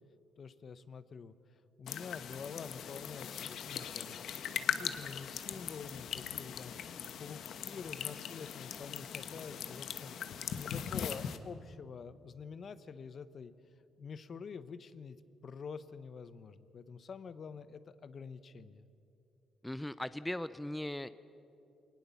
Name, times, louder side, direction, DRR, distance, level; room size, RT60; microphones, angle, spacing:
voice 1, 0.4-1.3 1.8-4.2 4.6-10.2 10.5-13.5 14.0-15.2 15.4-18.9, left 5 dB, 50° left, 14 dB, 0.9 m, -47 dB
sound 1, 1.9-11.4, left 8 dB, 70° left, 1.0 m, -40 dB
voice 2, 19.6-21.1, left 1 dB, 5° left, 14 dB, 0.5 m, -38 dB
22.5 x 19.0 x 7.1 m, 2.8 s
cardioid pair, 90°, 0 cm